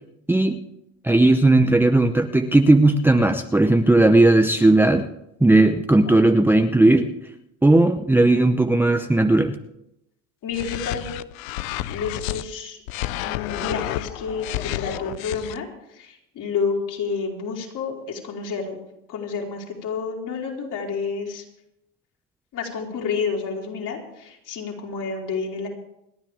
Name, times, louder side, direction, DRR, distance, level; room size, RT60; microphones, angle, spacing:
voice 1, 1.0-5.1 5.4-7.1 7.6-9.5, right 2 dB, 5° right, 6 dB, 0.8 m, -16 dB
voice 2, 10.4-11.1 11.9-12.8 13.2-15.7 15.9-18.8 19.1-21.4 22.5-25.7, left 5 dB, 50° left, -2 dB, 4.7 m, -29 dB
sound 1, 10.5-12.4 12.9-15.6, left 14 dB, 85° left, 0.8 m, -30 dB
29.0 x 9.7 x 3.6 m, 0.82 s
supercardioid pair, 105°, 39 cm